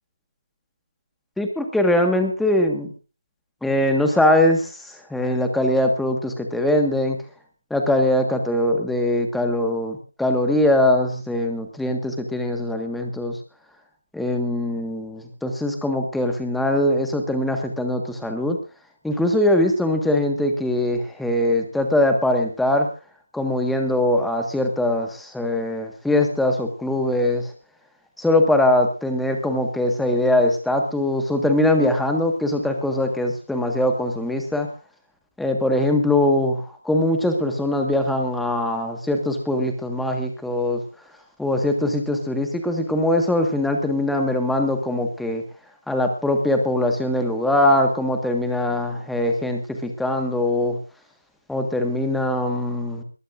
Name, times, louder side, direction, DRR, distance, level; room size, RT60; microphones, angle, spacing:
voice 1, 1.4-2.9 3.6-7.2 7.7-13.4 14.1-18.6 19.0-22.9 23.3-27.5 28.2-34.7 35.4-40.8 41.4-45.4 45.9-50.8 51.5-53.0, left 1 dB, ahead, 4 dB, 1.6 m, -22 dB
21.5 x 14.0 x 2.6 m, 0.35 s
figure-of-eight pair, 155°, 0 cm